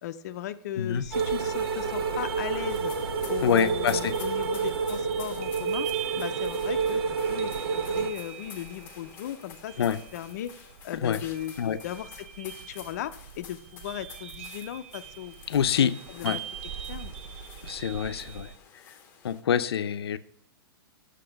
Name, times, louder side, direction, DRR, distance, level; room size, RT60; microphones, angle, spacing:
voice 1, 0.0-2.9 3.3-5.9 6.2-7.0 7.3-10.5 10.8-15.5 15.8-16.4 16.9-17.1, left 11 dB, 40° left, 11 dB, 0.5 m, -37 dB
sound 1, 0.9-18.6, right 10 dB, 35° right, 0.4 m, -43 dB
sound 2, 1.1-8.1, right 5 dB, 70° right, 1.1 m, -29 dB
sound 3, 2.7-19.4, left 7 dB, 15° left, 0.8 m, -49 dB
voice 2, 3.4-4.2 9.8-10.0 11.0-11.2 11.6-11.8 15.5-15.9 16.2-16.4 17.7-18.5 19.2-20.2, left 8 dB, 85° left, 12 dB, 0.6 m, -26 dB
7.8 x 6.6 x 5.1 m, 0.73 s
hypercardioid pair, 170°, 13 cm